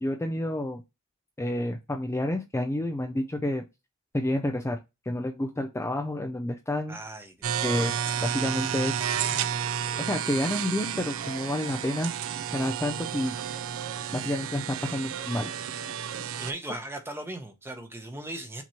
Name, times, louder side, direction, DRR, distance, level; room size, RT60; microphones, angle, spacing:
voice 1, 0.0-0.8 1.4-3.6 4.1-4.8 5.1-7.0 7.6-8.0 8.2-9.1 10.0-12.1 12.5-13.4 14.1-15.5, left 1 dB, 10° left, 0.4 m, -29 dB
voice 2, 6.9-7.5 16.4-18.6, right 1 dB, 10° right, 0.8 m, -38 dB
sound 1, 7.4-16.5, right 9 dB, 65° right, 0.5 m, -31 dB
5.9 x 3.0 x 2.9 m
head